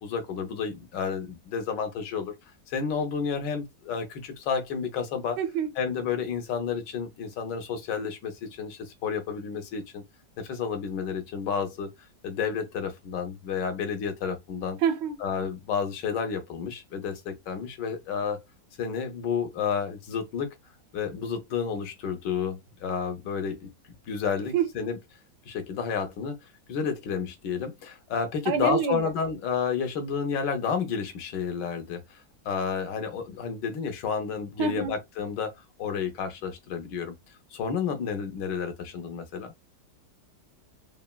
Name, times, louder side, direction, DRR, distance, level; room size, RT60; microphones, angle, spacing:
voice 1, 0.0-2.3 2.7-5.4 5.8-10.0 10.4-11.9 12.2-14.8 15.2-18.4 18.8-20.5 20.9-23.7 24.1-25.0 25.5-26.4 26.7-35.5 35.8-37.1 37.5-39.5, left 6 dB, 80° left, 1.4 m, -31 dB
voice 2, 5.4-5.7 14.8-15.2 24.5-24.7 28.5-29.1 34.6-34.9, right 8 dB, 85° right, 1.3 m, -26 dB
3.4 x 2.1 x 2.2 m
omnidirectional pair, 1.9 m